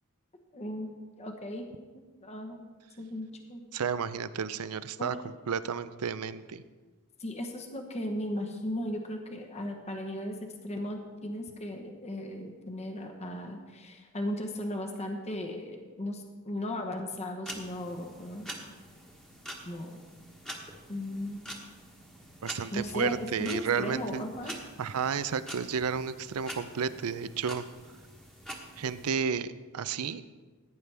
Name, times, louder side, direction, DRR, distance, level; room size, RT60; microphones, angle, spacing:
voice 1, 0.5-1.7 2.2-2.7 3.0-3.6 5.0-5.2 7.2-18.6 19.6-20.0 20.9-21.5 22.7-24.5, left 1 dB, 30° left, 3 dB, 1.0 m, -36 dB
voice 2, 3.7-6.6 22.4-24.2 24.8-27.7 28.8-30.2, right 6 dB, 75° right, 14 dB, 0.5 m, -32 dB
sound 1, 17.5-29.1, equal, 5° left, 1.3 m, -46 dB
15.0 x 9.6 x 3.4 m, 1.3 s
head